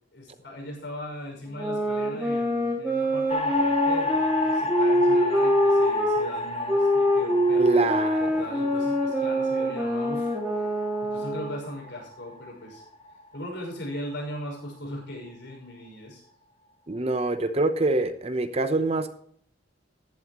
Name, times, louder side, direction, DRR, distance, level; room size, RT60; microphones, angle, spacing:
voice 1, 0.1-10.7 11.0-12.8 13.3-16.2, left 1 dB, 65° left, 0 dB, 6.1 m, -39 dB
sound 1, 1.5-6.2 6.7-11.7, equal, 5° right, 3.6 m, -24 dB
sound 2, 3.3-13.6, left 1 dB, 30° left, 1.2 m, -31 dB
voice 2, 7.6-8.3 16.9-19.1, right 2 dB, 30° right, 10 dB, 0.8 m, -25 dB
15.0 x 12.0 x 3.1 m, 0.63 s
head